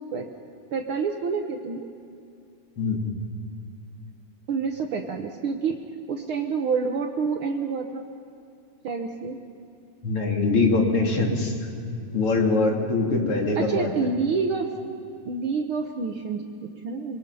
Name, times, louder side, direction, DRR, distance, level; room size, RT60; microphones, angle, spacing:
voice 1, 0.7-1.9 4.5-5.8 6.1-8.1 8.8-9.4 13.6-14.7 15.2-17.2, right 5 dB, 80° right, 3 dB, 1.2 m, -28 dB
voice 2, 10.0-11.5 11.9-13.9, left 3 dB, 40° left, 0 dB, 3.3 m, -23 dB
26.0 x 23.0 x 5.6 m, 2.6 s
omnidirectional pair, 3.9 m